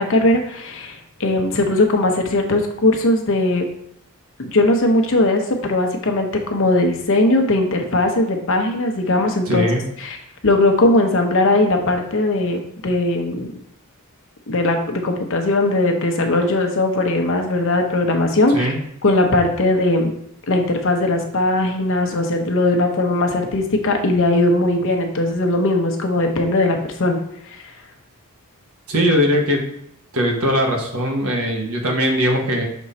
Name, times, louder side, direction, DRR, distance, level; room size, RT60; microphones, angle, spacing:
voice 1, 0.0-3.7 4.4-9.7 10.0-10.2 10.4-13.5 14.5-18.7 19.0-20.1 20.5-27.2, left 2 dB, 60° left, 4 dB, 0.9 m, -19 dB
voice 2, 9.5-9.8 18.5-18.8 28.9-29.6 30.1-32.7, equal, 70° right, 1 dB, 1.3 m, -20 dB
6.2 x 3.7 x 4.2 m, 0.74 s
head